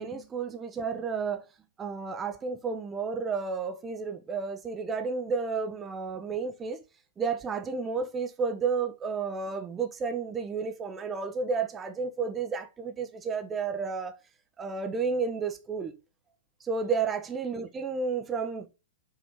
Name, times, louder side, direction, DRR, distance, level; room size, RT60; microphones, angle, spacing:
voice 1, 0.0-1.4 1.8-6.8 7.2-14.2 14.6-15.9 16.6-18.7, right 5 dB, 20° right, 0.6 m, -31 dB
5.0 x 2.8 x 3.5 m
figure-of-eight pair, 110°, 0 cm